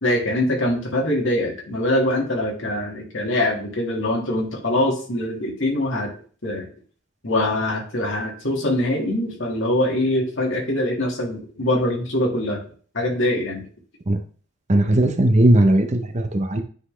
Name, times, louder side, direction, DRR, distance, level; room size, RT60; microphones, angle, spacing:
voice 1, 0.0-6.1 6.4-6.7 7.2-12.6 12.9-13.7, left 1 dB, 65° left, -1 dB, 2.2 m, -23 dB
voice 2, 14.7-16.6, right 1 dB, 35° right, 6 dB, 0.8 m, -17 dB
9.7 x 4.1 x 3.4 m, 0.43 s
head